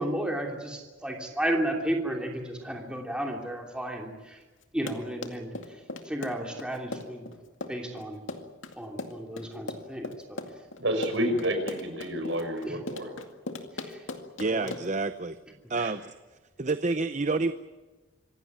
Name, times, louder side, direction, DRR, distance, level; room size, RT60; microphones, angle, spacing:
voice 1, 0.0-4.4 4.7-5.5 6.0-7.3 7.7-8.2 8.8-10.4 12.6-12.8 13.8-14.0 14.5-14.7, right 1 dB, 5° right, 1 dB, 2.9 m, -33 dB
Run, 4.6-15.0, left 2 dB, 75° left, 2.2 m, -39 dB
voice 2, 10.8-13.2 15.7-15.9, equal, 65° right, 5 dB, 5.7 m, -29 dB
voice 3, 14.4-15.4 15.7-16.1 16.6-17.5, right 3 dB, 35° right, 11 dB, 0.7 m, -28 dB
26.0 x 16.5 x 9.6 m, 1.2 s
head